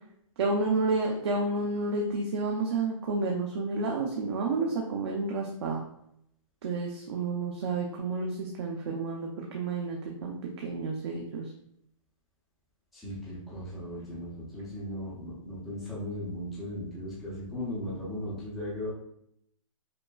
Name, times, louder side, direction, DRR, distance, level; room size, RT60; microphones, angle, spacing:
voice 1, 0.4-5.8 6.6-11.5, right 3 dB, 50° right, -1 dB, 0.6 m, -30 dB
voice 2, 12.9-18.9, left 1 dB, ahead, -10 dB, 0.4 m, -37 dB
5.0 x 2.0 x 2.2 m, 0.74 s
hypercardioid pair, 165°, 18 cm